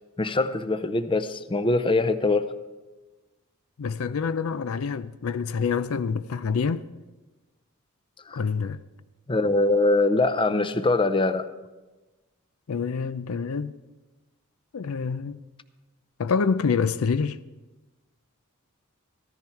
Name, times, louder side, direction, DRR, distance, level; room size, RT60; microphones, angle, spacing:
voice 1, 0.2-2.5 8.3-8.4 9.3-11.5, left 2 dB, 25° left, 0.6 m, -23 dB
voice 2, 3.8-6.9 8.3-8.8 12.7-13.7 14.7-15.5 16.2-17.4, left 5 dB, 75° left, 0.5 m, -27 dB
15.0 x 14.0 x 4.5 m
head